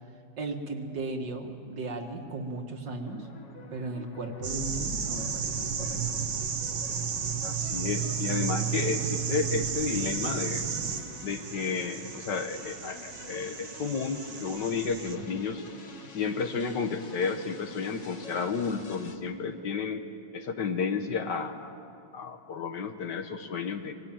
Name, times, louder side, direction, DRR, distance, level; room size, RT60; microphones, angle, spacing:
voice 1, 0.4-3.3 3.7-6.0 15.2-15.3, right 3 dB, 65° right, 3 dB, 2.5 m, -36 dB
sound 1, 3.0-19.2, left 2 dB, 40° left, 1.7 m, -47 dB
sound 2, 4.4-15.2, right 7 dB, 85° right, 2.3 m, -33 dB
voice 2, 7.4-10.7 11.2-15.6 16.1-20.0 20.3-21.7 22.1-23.9, left 5 dB, 65° left, 7 dB, 1.8 m, -32 dB
24.5 x 20.0 x 9.1 m, 2.6 s
omnidirectional pair, 2.1 m